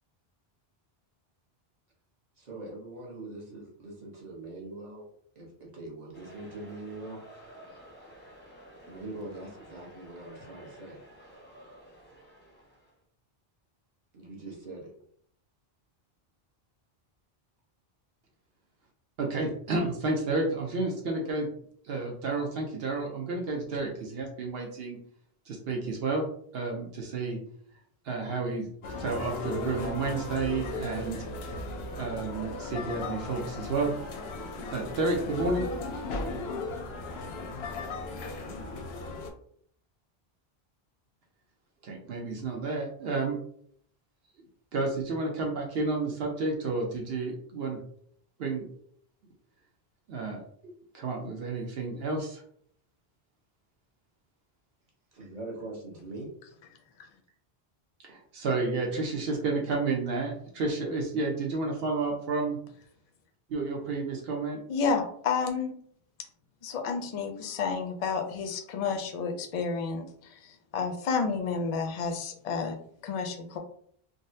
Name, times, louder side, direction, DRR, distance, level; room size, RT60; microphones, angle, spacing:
voice 1, 2.4-5.1 5.3-7.2 8.9-11.0 14.1-14.9 55.1-56.3, right 2 dB, 45° right, -2 dB, 1.0 m, -42 dB
sound 1, 6.1-12.9, right 1 dB, 10° left, 0.6 m, -52 dB
voice 2, 19.2-21.5 21.8-25.0 25.5-26.3 26.5-27.4 28.0-28.7 29.0-31.2 31.9-33.9 34.7-35.7 41.8-43.4 44.7-47.8 48.4-48.7 50.1-52.4 58.0-62.6 63.5-64.6, right 3 dB, 75° right, 0 dB, 0.9 m, -31 dB
sound 2, 28.8-39.3, left 2 dB, 90° left, 0.8 m, -36 dB
voice 3, 64.7-65.7 66.6-72.8 73.0-73.6, left 5 dB, 55° left, 4 dB, 0.4 m, -30 dB
3.7 x 2.0 x 2.6 m, 0.62 s
omnidirectional pair, 1.0 m